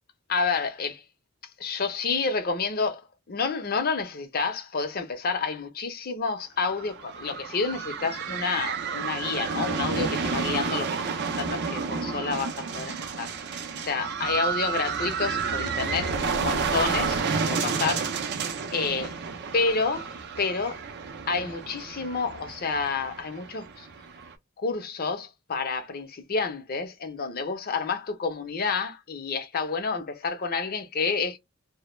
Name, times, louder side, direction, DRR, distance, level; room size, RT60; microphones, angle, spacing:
voice 1, 0.3-1.0 1.6-11.0 11.4-13.3 13.8-18.1 18.7-19.2 19.5-20.8 21.3-23.9 24.6-31.4, left 4 dB, 45° left, 0.6 m, -29 dB
sound 1, 6.7-24.3, right 5 dB, 50° right, 0.4 m, -31 dB
2.2 x 2.0 x 3.1 m
head